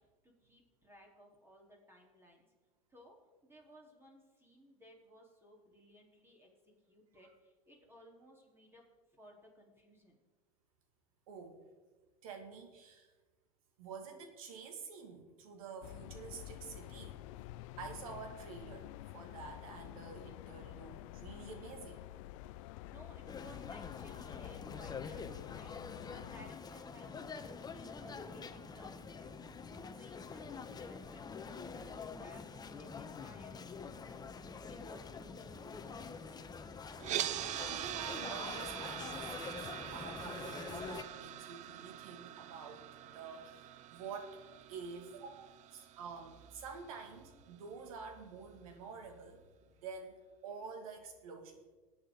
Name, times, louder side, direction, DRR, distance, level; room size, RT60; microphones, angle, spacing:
voice 1, 0.2-2.5 2.9-3.2 3.4-8.9 9.1-10.2 22.5-25.8 26.1-29.4 29.8-36.4, equal, 10° right, -1 dB, 4.0 m, -60 dB
voice 2, 11.3-11.6 12.2-13.1 13.8-17.2 17.8-22.1 37.7-42.9 43.1-44.4 44.7-51.6, right 5 dB, 75° right, 5 dB, 2.3 m, -49 dB
sound 1, 15.8-26.5, left 16 dB, 65° left, 0.4 m, -49 dB
sound 2, 23.3-41.0, left 5 dB, 20° left, 1.1 m, -46 dB
sound 3, 37.0-47.1, right 13 dB, 40° right, 0.6 m, -43 dB
20.0 x 8.8 x 4.0 m, 1.3 s
hypercardioid pair, 85°, 18 cm